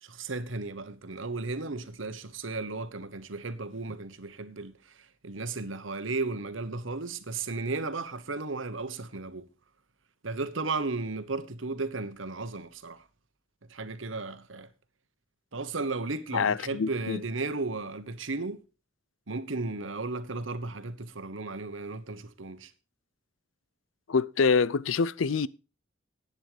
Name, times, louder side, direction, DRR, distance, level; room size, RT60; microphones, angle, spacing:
voice 1, 0.0-4.7 5.2-9.5 10.2-13.0 13.7-14.7 15.5-18.6 19.3-22.7, right 3 dB, 80° right, 1.2 m, -34 dB
voice 2, 16.3-17.2 24.1-25.5, left 5 dB, 85° left, 0.5 m, -26 dB
11.0 x 9.0 x 5.0 m
head